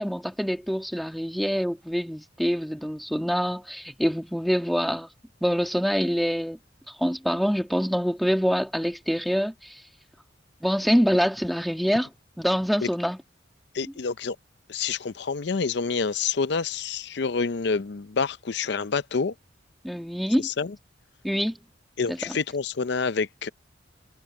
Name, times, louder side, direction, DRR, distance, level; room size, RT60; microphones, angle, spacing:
voice 1, 0.0-5.1 5.4-6.6 7.0-9.8 10.6-12.1 12.4-13.2 19.8-20.5 21.2-21.6 22.1-22.4, equal, ahead, 1.8 m, -25 dB
voice 2, 13.7-14.4 14.7-19.3 20.4-20.7 22.0-23.5, left 5 dB, 60° left, 0.6 m, -27 dB
head